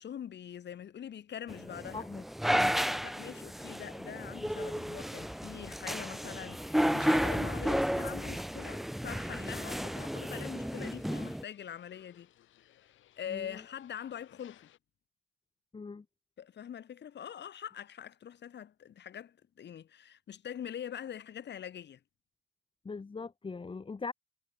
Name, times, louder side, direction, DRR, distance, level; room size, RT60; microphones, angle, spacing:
voice 1, 0.0-2.1 3.0-12.3 13.2-14.7 16.4-22.0, left 9 dB, 60° left, 4.8 m, -43 dB
sound 1, 1.5-11.4, equal, ahead, 0.5 m, -33 dB
voice 2, 1.9-2.7 13.3-13.6 15.7-16.0 22.8-24.1, left 4 dB, 25° left, 1.4 m, -41 dB
sound 2, 9.7-14.8, left 13 dB, 80° left, 3.6 m, -61 dB
cardioid pair, 90°, 20 cm